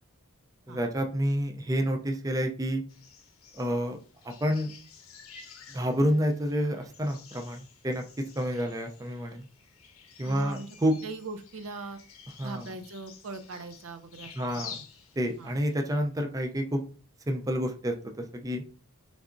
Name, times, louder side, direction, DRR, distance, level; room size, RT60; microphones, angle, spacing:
voice 1, 0.7-2.8 3.5-4.7 5.7-8.0 8.4-9.4 10.2-10.9 12.4-12.7 14.4-14.8 15.2-16.8 17.3-18.6, equal, 15° right, 4 dB, 0.4 m, -29 dB
sound 1, 2.9-15.9, left 7 dB, 85° left, 0.7 m, -50 dB
voice 2, 10.2-10.7 11.0-12.0 12.4-14.4 15.4-15.5, right 3 dB, 65° right, 8 dB, 0.5 m, -40 dB
3.9 x 3.5 x 2.5 m, 0.38 s
head